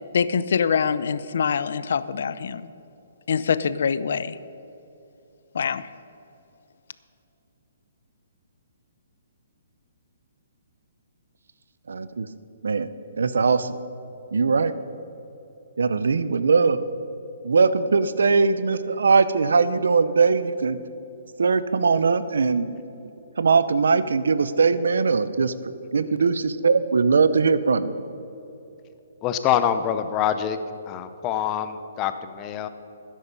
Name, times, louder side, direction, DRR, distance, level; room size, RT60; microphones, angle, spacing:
voice 1, 0.1-2.6 3.3-4.4 5.5-5.8, left 6 dB, 65° left, 15 dB, 0.5 m, -24 dB
voice 2, 11.9-12.3 12.6-12.9 13.2-13.7 14.3-14.7 15.8-16.8 17.4-20.8 21.4-22.7 23.4-25.5 25.9-27.9, right 4 dB, 85° right, 14 dB, 0.7 m, -20 dB
voice 3, 29.2-30.6 30.9-32.7, left 9 dB, 20° left, 10 dB, 0.7 m, -25 dB
12.5 x 10.0 x 5.4 m, 2.9 s
hypercardioid pair, 160°, 0 cm